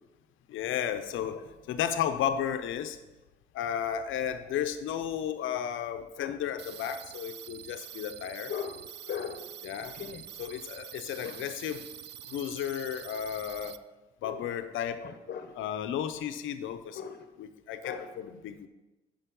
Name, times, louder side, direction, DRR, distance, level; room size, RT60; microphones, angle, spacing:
voice 1, 0.5-1.4 1.7-3.0 3.5-8.5 9.6-9.9 10.4-11.8 12.3-13.8 14.2-15.0 15.6-17.0 17.4-18.7, left 9 dB, 80° left, 9 dB, 0.7 m, -33 dB
sound 1, 6.6-13.8, right 11 dB, 60° right, 0.4 m, -46 dB
voice 2, 8.5-9.5 9.9-10.2 11.2-11.4 14.2-14.4 15.0-15.5 16.9-17.3 17.8-18.1, left 7 dB, 55° left, 9 dB, 0.9 m, -39 dB
10.0 x 5.3 x 5.3 m, 1.1 s
cardioid pair, 90°, 20 cm